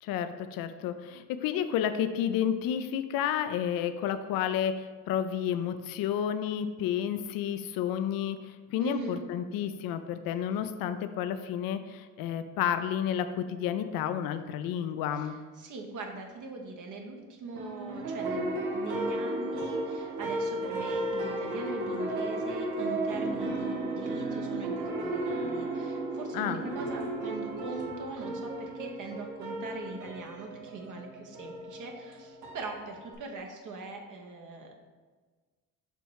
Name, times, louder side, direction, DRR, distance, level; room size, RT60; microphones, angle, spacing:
voice 1, 0.0-8.4 8.7-15.4 26.3-26.6, left 9 dB, 65° left, 10 dB, 0.5 m, -31 dB
voice 2, 8.8-9.2 15.1-34.7, right 3 dB, 55° right, 2 dB, 1.0 m, -41 dB
sound 1, 17.5-33.1, right 2 dB, 80° right, 1.3 m, -34 dB
6.7 x 3.0 x 4.7 m, 1.4 s
supercardioid pair, 75°, 38 cm